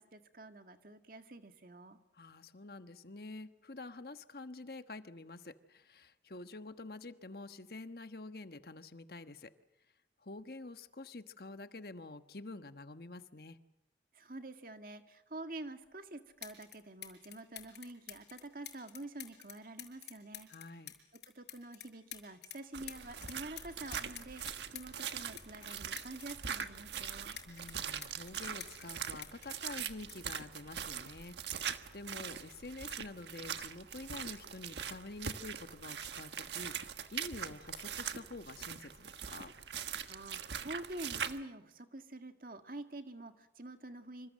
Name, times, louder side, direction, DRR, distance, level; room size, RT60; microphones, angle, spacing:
voice 1, 0.0-2.0 14.1-20.5 21.3-27.4 40.1-44.3, right 2 dB, 50° right, 7 dB, 1.9 m, -47 dB
voice 2, 2.1-9.5 10.2-13.6 20.5-20.9 27.4-39.5, left 2 dB, 55° left, 10 dB, 1.3 m, -48 dB
sound 1, 15.9-16.0 16.4-16.8 17.0-22.6 22.9-26.7 27.0-29.0 29.2-31.1 32.0-32.2, left 12 dB, 75° left, 5.7 m, -49 dB
sound 2, 22.7-41.4, right 8 dB, 80° right, 1.4 m, -42 dB
26.5 x 26.0 x 7.5 m, 0.90 s
head